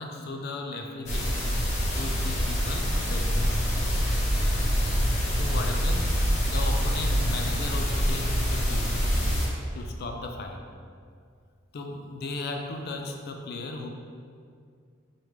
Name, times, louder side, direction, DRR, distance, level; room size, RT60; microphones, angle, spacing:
voice 1, 0.0-1.5 1.9-3.6 5.3-9.0 9.7-10.6 11.7-13.9, left 2 dB, 50° left, 3 dB, 0.4 m, -36 dB
sound 1, 1.1-9.5, equal, 35° left, 0.7 m, -25 dB
4.9 x 2.2 x 3.2 m, 2.2 s
head